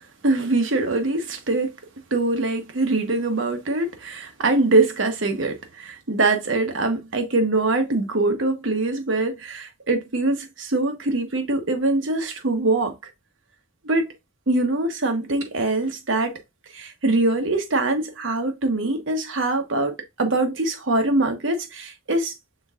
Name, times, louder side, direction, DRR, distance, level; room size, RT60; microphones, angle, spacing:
voice 1, 0.2-1.7 2.1-12.9 13.8-14.0 14.5-16.4 16.7-22.3, right 2 dB, 75° right, 1.1 m, -23 dB
6.2 x 3.6 x 2.4 m
head